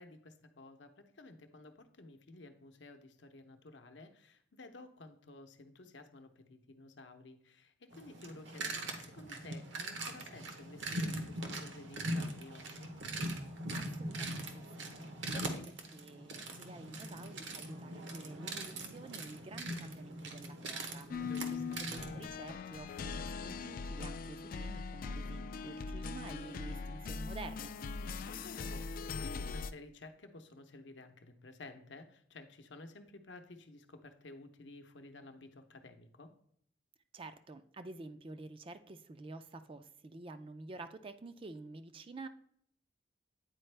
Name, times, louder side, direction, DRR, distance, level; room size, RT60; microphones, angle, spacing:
voice 1, 0.0-13.0 15.3-15.7 21.2-21.8 28.0-36.3, left 2 dB, 65° left, 7 dB, 0.7 m, -53 dB
sound 1, 7.9-22.3, right 1 dB, 70° right, 0.9 m, -41 dB
voice 2, 13.7-14.9 15.9-21.1 21.8-27.7 37.1-42.3, right 3 dB, 30° right, 10 dB, 0.4 m, -49 dB
sound 2, 21.1-29.7, left 4 dB, 50° left, 0.3 m, -41 dB
9.0 x 4.3 x 3.3 m, 0.68 s
head